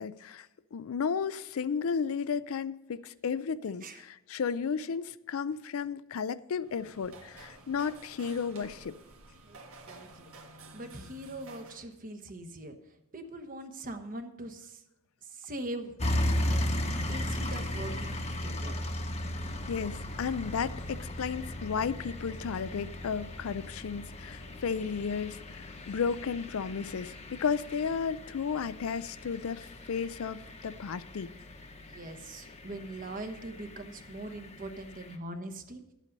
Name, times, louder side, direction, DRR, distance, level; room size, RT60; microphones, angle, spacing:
voice 1, 0.0-9.0 19.7-31.3, left 6 dB, 65° left, 0.4 m, -33 dB
sound 1, 6.6-11.9, right 2 dB, 70° right, 1.5 m, -51 dB
voice 2, 9.9-10.3 10.7-12.7 13.1-14.8 15.2-15.9 16.4-16.7 17.1-18.8 31.7-35.8, right 1 dB, 40° right, 1.1 m, -42 dB
sound 2, 16.0-35.1, left 1 dB, 30° left, 1.0 m, -37 dB
11.5 x 8.3 x 5.3 m
head